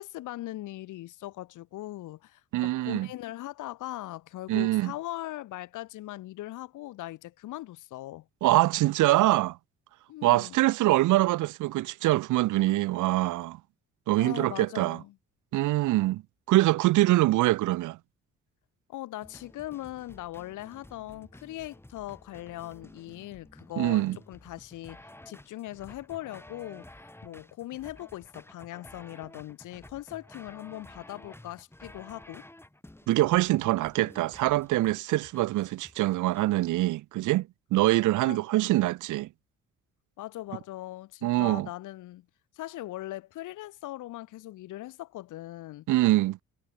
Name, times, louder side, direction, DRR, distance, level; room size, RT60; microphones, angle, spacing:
voice 1, 0.0-8.3 10.1-10.6 14.2-15.2 18.9-26.9 27.2-32.5 38.2-38.4 40.2-42.3 42.5-45.9, left 15 dB, 90° left, 3.2 m, -40 dB
voice 2, 2.5-3.1 4.5-4.9 8.4-9.6 10.2-13.6 14.1-15.0 15.5-16.2 16.5-18.0 23.8-24.2 33.1-39.3 41.2-41.7 45.9-46.4, right 17 dB, 80° right, 0.7 m, -24 dB
sound 1, 19.2-36.5, left 1 dB, 10° left, 3.2 m, -52 dB
cardioid pair, 90°, 30 cm